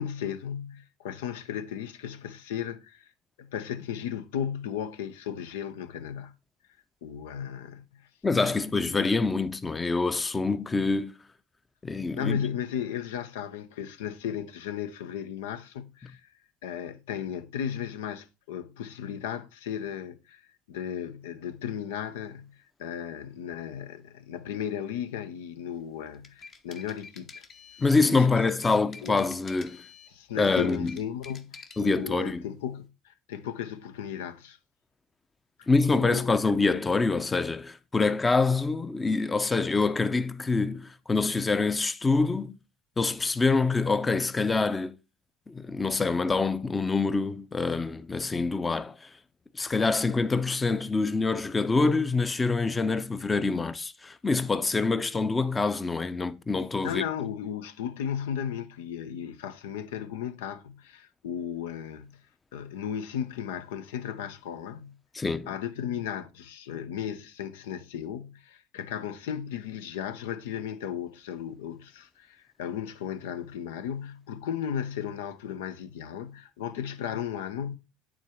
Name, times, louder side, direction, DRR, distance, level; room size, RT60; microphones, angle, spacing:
voice 1, 0.0-3.1 3.4-6.3 7.0-8.1 8.5-8.6 8.9-9.1 12.2-16.3 16.6-20.4 20.7-27.5 28.0-29.3 30.1-34.6 35.9-36.3 56.8-62.2 62.5-65.0 65.5-77.8, left 9 dB, 80° left, 0.6 m, -35 dB
voice 2, 8.2-11.1 11.8-12.4 27.8-29.8 30.4-30.9 31.8-32.4 35.7-42.6 43.0-44.9 45.5-49.1 49.5-57.0 65.1-65.5, left 3 dB, 20° left, 0.6 m, -26 dB
sound 1, 26.1-28.0 28.5-30.2 30.5-32.0, left 5 dB, 45° left, 1.1 m, -48 dB
8.9 x 3.8 x 4.4 m
hypercardioid pair, 70°, 0 cm